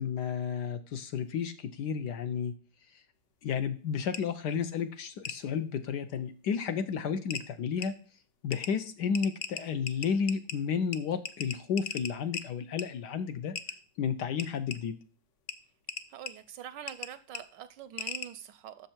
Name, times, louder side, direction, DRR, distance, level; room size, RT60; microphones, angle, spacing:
voice 1, 0.0-2.5 2.9-3.0 3.4-7.9 8.4-13.5 14.0-14.9, left 7 dB, 70° left, 1.1 m, -32 dB
sound 1, 4.1-4.2 5.2-5.4 6.7-6.8 7.3-7.4 7.8-7.9 8.5-8.7 9.1-10.6 10.9-11.0 11.2-12.4 12.8-12.9 13.5-13.8 14.4-14.8 15.5-15.6 15.9-16.3 16.9-17.1 17.3-17.4 18.0-18.3, left 6 dB, 85° left, 0.6 m, -37 dB
voice 2, 16.1-18.9, right 10 dB, 75° right, 1.1 m, -45 dB
7.0 x 5.5 x 4.3 m
omnidirectional pair, 2.2 m